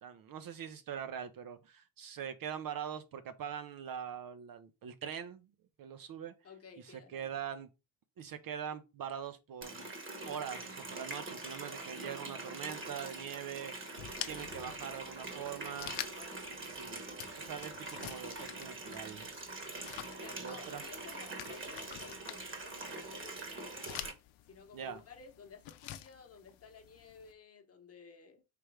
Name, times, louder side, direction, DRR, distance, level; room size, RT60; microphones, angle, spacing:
voice 1, 0.0-5.5 5.8-6.3 6.8-7.7 8.2-9.9 10.3-13.7 14.3-15.9 16.6-19.3 20.4-20.8 24.7-25.0, right 8 dB, 45° right, 0.6 m, -43 dB
voice 2, 6.4-7.4 16.1-16.4 20.2-23.9 24.5-28.4, left 5 dB, 30° left, 1.0 m, -54 dB
Water tap faucet, 9.6-24.1, right 3 dB, 25° right, 1.1 m, -44 dB
sound 1, 14.0-27.3, left 13 dB, 70° left, 0.7 m, -49 dB
3.4 x 3.0 x 4.7 m
cardioid pair, 100°, 49 cm